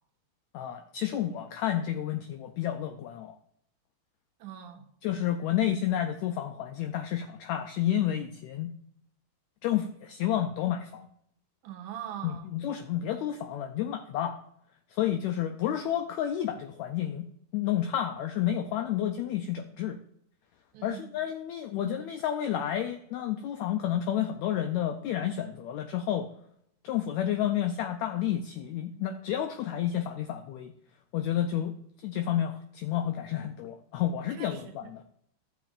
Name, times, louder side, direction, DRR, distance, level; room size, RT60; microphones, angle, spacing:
voice 1, 0.5-3.3 5.0-8.7 9.6-11.1 12.2-14.4 14.9-17.3 17.5-20.0 20.8-26.3 26.8-30.7 31.1-31.8 32.0-35.0, left 10 dB, 85° left, 7 dB, 1.6 m, -30 dB
voice 2, 4.4-4.8 11.6-12.5 20.7-21.1 34.3-34.9, right 10 dB, 75° right, 5 dB, 2.2 m, -42 dB
14.0 x 7.2 x 2.5 m, 0.72 s
omnidirectional pair, 3.8 m